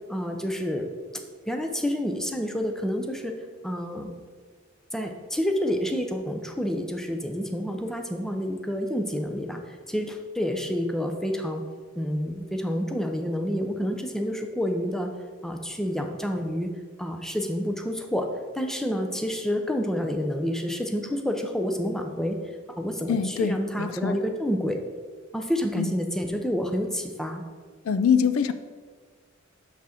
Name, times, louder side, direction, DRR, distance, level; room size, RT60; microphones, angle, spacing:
voice 1, 0.1-0.9 1.5-3.3 3.6-4.1 4.9-11.6 12.0-15.1 15.4-16.7 17.0-18.3 18.5-22.4 22.8-24.8 25.3-27.4, equal, ahead, 4 dB, 0.6 m, -28 dB
voice 2, 23.1-24.2 25.8-25.9 27.8-28.5, left 6 dB, 75° left, 12 dB, 0.4 m, -24 dB
6.2 x 6.0 x 4.3 m, 1.5 s
head